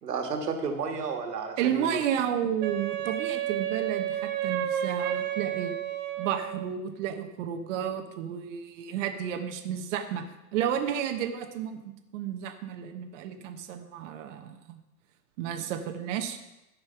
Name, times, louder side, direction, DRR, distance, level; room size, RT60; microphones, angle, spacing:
voice 1, 0.0-2.0, right 5 dB, 85° right, 4 dB, 2.1 m, -32 dB
voice 2, 1.6-5.8 6.2-11.8 12.1-14.8 15.4-16.4, right 9 dB, 50° right, 6 dB, 1.2 m, -32 dB
Wind instrument woodwind instrument, 2.6-6.7, right 11 dB, 25° right, 0.9 m, -31 dB
13.5 x 5.7 x 5.7 m, 0.95 s
hypercardioid pair, 130°, 47 cm